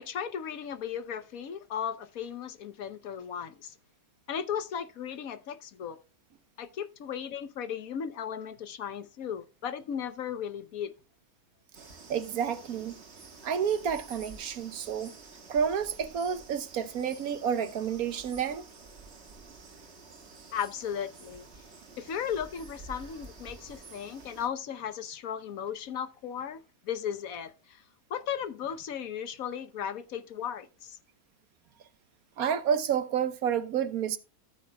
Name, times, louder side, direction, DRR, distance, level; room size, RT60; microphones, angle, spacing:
voice 1, 0.0-3.7 4.3-6.0 6.6-10.9 20.5-21.5 22.0-27.8 28.1-31.0, left 8 dB, 65° left, 1.2 m, -36 dB
sound 1, 11.7-24.5, right 4 dB, 45° right, 1.7 m, -50 dB
voice 2, 12.1-13.0 13.4-15.1 15.5-18.6 32.4-34.2, right 8 dB, 70° right, 1.3 m, -30 dB
14.0 x 8.6 x 2.2 m
omnidirectional pair, 1.7 m